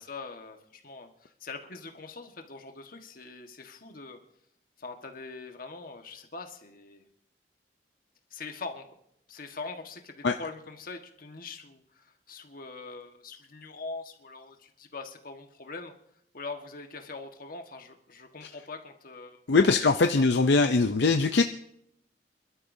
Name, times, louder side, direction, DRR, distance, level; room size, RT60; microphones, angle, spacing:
voice 1, 0.0-4.2 4.8-7.0 8.3-8.9 9.3-15.9 16.3-19.7 20.1-20.2, left 3 dB, 55° left, 4 dB, 1.5 m, -42 dB
voice 2, 19.5-21.4, left 3 dB, 75° left, 6 dB, 0.6 m, -22 dB
27.0 x 12.5 x 2.7 m, 0.74 s
head